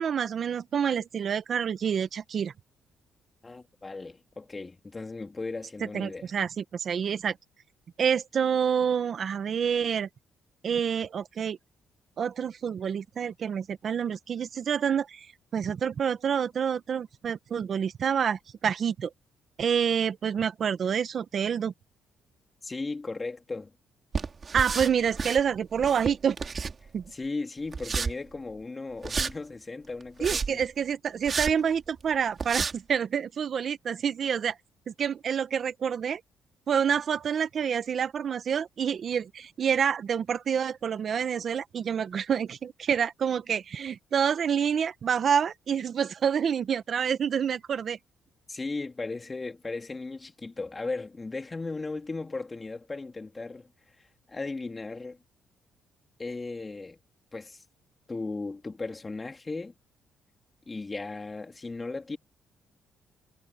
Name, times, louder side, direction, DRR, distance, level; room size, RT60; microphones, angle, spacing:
voice 1, 0.0-2.5 5.9-7.3 8.0-10.1 10.6-11.6 12.2-15.3 15.5-19.1 19.6-21.7 24.5-26.4 26.9-27.0 30.2-34.6 34.9-36.2 36.7-48.0, right 7 dB, 55° right, 1.3 m, -27 dB
voice 2, 3.4-6.3 22.6-23.7 27.1-30.6 48.5-53.7 54.3-55.2 56.2-57.0 57.3-57.6 58.1-59.7 60.7-62.2, left 3 dB, 25° left, 3.3 m, -36 dB
sound 1, 24.1-25.4 25.8-27.1 27.7-28.1 29.0-29.3 30.0-30.6 31.3-31.5 32.0-32.1 32.4-32.7, right 5 dB, 40° right, 3.3 m, -31 dB
cardioid pair, 90°, 0 cm